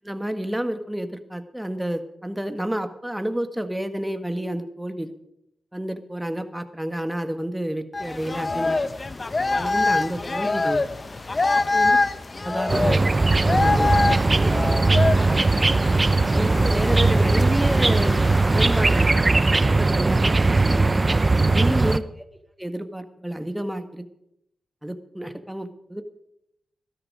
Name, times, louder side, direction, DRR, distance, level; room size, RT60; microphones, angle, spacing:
voice 1, 0.0-5.1 5.7-8.8 9.5-10.9 11.7-12.0 12.4-13.0 13.4-14.0 14.3-15.1 16.3-18.2 18.5-20.9 21.5-22.0 22.6-24.0 24.8-26.0, right 1 dB, 10° right, 9 dB, 1.6 m, -30 dB
sound 1, 7.9-19.1, left 3 dB, 40° left, 0.8 m, -25 dB
sound 2, 12.7-22.0, right 3 dB, 35° right, 0.7 m, -19 dB
14.0 x 13.0 x 5.1 m, 0.79 s
cardioid pair, 45°, 0 cm